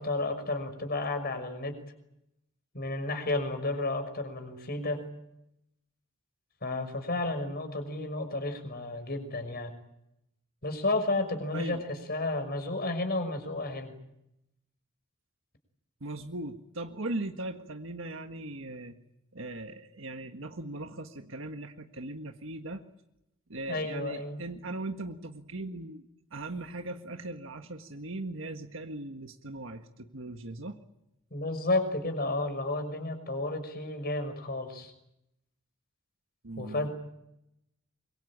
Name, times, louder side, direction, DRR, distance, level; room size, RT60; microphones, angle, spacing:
voice 1, 0.0-1.7 2.7-5.0 6.6-9.7 10.6-14.0 23.7-24.4 31.3-34.9 36.6-36.9, left 2 dB, 50° left, 8 dB, 6.0 m, -32 dB
voice 2, 16.0-18.9 19.3-22.8 23.5-30.8 36.4-36.9, right 2 dB, 65° right, 6 dB, 1.7 m, -39 dB
25.5 x 24.0 x 8.8 m, 0.82 s
head